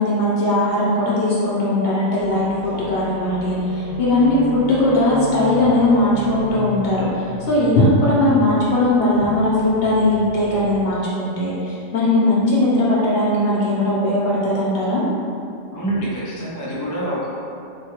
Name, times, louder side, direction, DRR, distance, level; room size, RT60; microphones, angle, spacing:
voice 1, 0.0-15.0, left 1 dB, 60° left, -7 dB, 0.8 m, -19 dB
sound 1, 2.2-10.9, right 1 dB, 80° right, 1.0 m, -34 dB
voice 2, 15.7-17.3, right 1 dB, 30° left, -8 dB, 0.3 m, -26 dB
3.0 x 2.2 x 2.9 m, 2.5 s
omnidirectional pair, 1.3 m